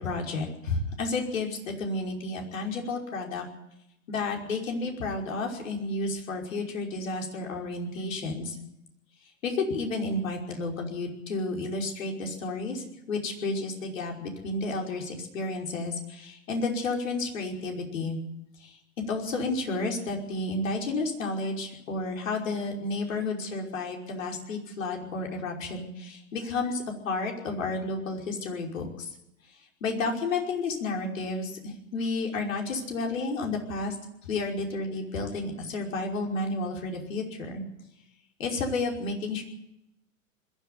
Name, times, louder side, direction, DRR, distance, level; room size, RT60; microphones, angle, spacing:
voice 1, 0.0-3.4 4.1-8.6 9.4-18.2 18.6-18.8 19.1-29.1 29.8-34.0 34.3-37.6 38.4-39.4, left 3 dB, 70° left, 1 dB, 5.5 m, -31 dB
21.5 x 13.0 x 9.5 m, 0.83 s
figure-of-eight pair, 100°, 41 cm